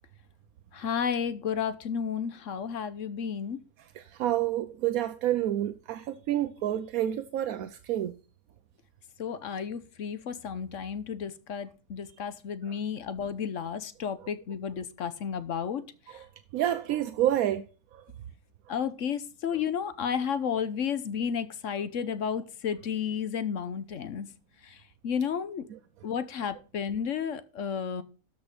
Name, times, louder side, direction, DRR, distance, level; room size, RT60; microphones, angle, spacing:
voice 1, 0.7-3.6 9.2-16.2 18.7-24.3 24.6-24.8 25.0-25.7 26.0-28.0, left 7 dB, 65° left, 1.2 m, -32 dB
voice 2, 3.9-8.1 16.1-16.2 16.5-17.6 17.9-18.0, right 12 dB, 85° right, 1.1 m, -29 dB
13.0 x 5.3 x 5.0 m
omnidirectional pair, 1.5 m